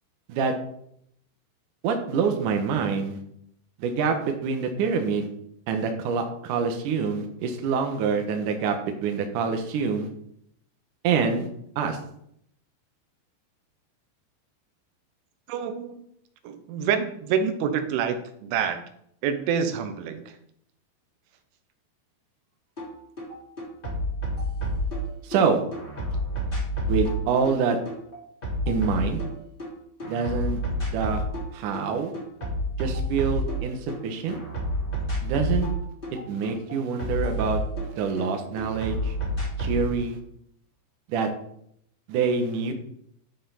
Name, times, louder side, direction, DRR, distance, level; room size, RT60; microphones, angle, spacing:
voice 1, 1.8-3.2 3.8-5.3 5.7-10.1 11.0-11.5 11.8-12.0 25.2-25.6 26.9-27.8 28.7-29.2 30.1-30.6 30.9-31.2 31.5-32.1 32.8-34.4 35.2-35.7 36.3-37.6 38.0-39.2 39.6-40.2 41.1-41.3 42.1-42.7, right 5 dB, 65° right, 4 dB, 2.1 m, -26 dB
voice 2, 15.5-16.0 16.5-18.8 19.2-20.2, right 7 dB, 85° right, 8 dB, 3.5 m, -27 dB
sound 1, 22.8-22.9 23.2-25.4 25.7-29.7 30.0-31.5 31.7-34.0 34.3-38.3 38.6-39.9, equal, 15° left, 2.7 m, -29 dB
11.5 x 5.7 x 5.7 m, 0.70 s
omnidirectional pair, 5.3 m